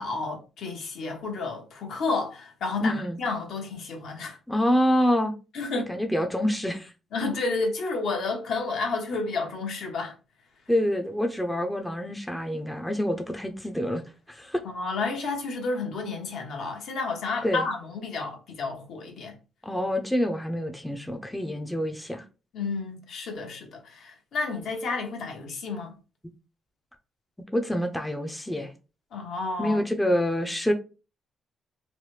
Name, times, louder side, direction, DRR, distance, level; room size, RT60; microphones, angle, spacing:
voice 1, 0.0-4.4 5.5-5.9 7.1-10.1 14.6-19.3 22.5-25.9 29.1-29.8, left 3 dB, 70° left, 0.9 m, -31 dB
voice 2, 2.8-3.2 4.5-5.3 5.9-6.9 10.7-14.0 14.3-14.6 17.4-17.6 19.6-22.2 27.5-28.7 29.6-30.7, equal, 5° left, 0.5 m, -26 dB
3.2 x 2.1 x 3.1 m
cardioid pair, 90°, 0 cm